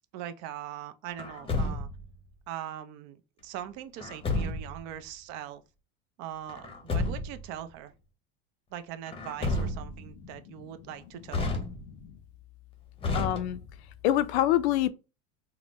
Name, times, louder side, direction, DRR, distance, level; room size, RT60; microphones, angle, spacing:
voice 1, 0.1-1.9 2.5-5.6 6.2-7.9 8.7-11.6, right 10 dB, 60° right, 0.6 m, -41 dB
Truck, 1.2-2.1 4.0-4.8 6.5-7.5 9.1-10.1 11.3-12.1 13.0-13.9, left 2 dB, 15° left, 0.7 m, -31 dB
voice 2, 13.1-13.6 14.0-14.9, left 13 dB, 80° left, 0.5 m, -25 dB
3.6 x 2.1 x 2.9 m
supercardioid pair, 120°, 32 cm